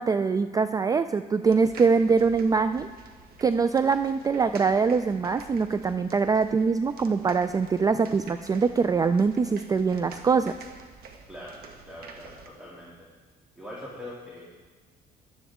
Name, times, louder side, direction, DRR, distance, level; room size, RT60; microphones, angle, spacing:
voice 1, 0.0-2.9 3.4-10.5, right 5 dB, 20° right, 11 dB, 0.3 m, -23 dB
sound 1, 1.4-12.5, right 4 dB, 65° right, 1.6 m, -48 dB
voice 2, 11.8-12.9 13.6-14.4, left 1 dB, 5° right, -6 dB, 2.6 m, -42 dB
17.5 x 12.0 x 3.6 m, 1.4 s
cardioid pair, 110°, 17 cm